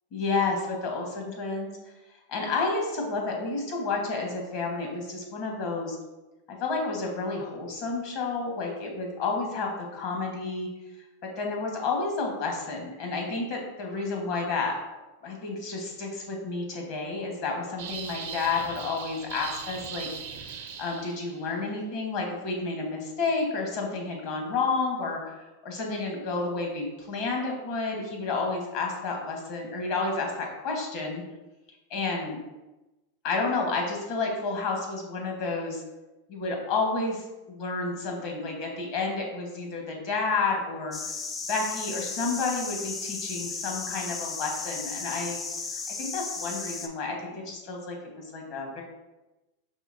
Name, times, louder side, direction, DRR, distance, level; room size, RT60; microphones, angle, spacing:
voice 1, 0.1-1.7 2.3-6.0 6.5-10.7 11.2-14.8 15.2-20.1 20.8-25.3 25.6-31.2 31.9-32.4 33.2-35.8 36.3-41.0 41.5-45.4 46.0-48.8, left 3 dB, 50° left, 1 dB, 1.1 m, -30 dB
sound 1, 17.8-21.5, right 7 dB, 70° right, 0.6 m, -39 dB
sound 2, 40.9-46.9, left 4 dB, 25° left, 0.4 m, -35 dB
4.9 x 3.1 x 2.5 m, 1.1 s
hypercardioid pair, 125°, 0 cm